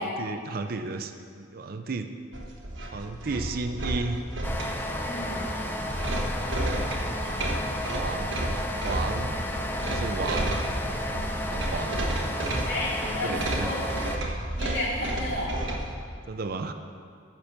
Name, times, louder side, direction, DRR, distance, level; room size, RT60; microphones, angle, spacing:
voice 1, 0.0-2.1 2.9-4.2 6.2-6.8 8.0-8.4 8.8-9.4 9.9-10.6 11.0-12.0 13.2-13.7 16.3-16.7, right 3 dB, 50° right, 8 dB, 0.5 m, -34 dB
sound 1, 2.3-15.9, right 1 dB, 70° right, 1.1 m, -32 dB
sound 2, 4.4-14.2, left 1 dB, 10° left, 0.5 m, -32 dB
voice 2, 5.0-5.4 12.7-13.8 14.5-15.5, left 1 dB, 60° left, -7 dB, 2.7 m, -32 dB
8.4 x 6.1 x 6.7 m, 2.2 s
head